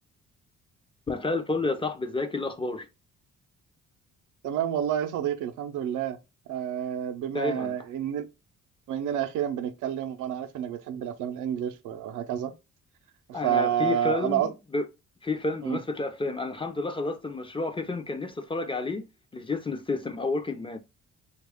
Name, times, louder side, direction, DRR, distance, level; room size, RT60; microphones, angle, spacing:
voice 1, 1.1-2.9 7.3-7.7 13.3-14.9 15.2-19.0 19.3-20.8, left 3 dB, 15° left, 0.5 m, -30 dB
voice 2, 4.4-6.2 6.5-8.3 8.9-12.5 13.3-14.5 15.6-15.8, right 9 dB, 85° right, 0.5 m, -29 dB
3.0 x 2.3 x 3.4 m
cardioid pair, 90°, 30 cm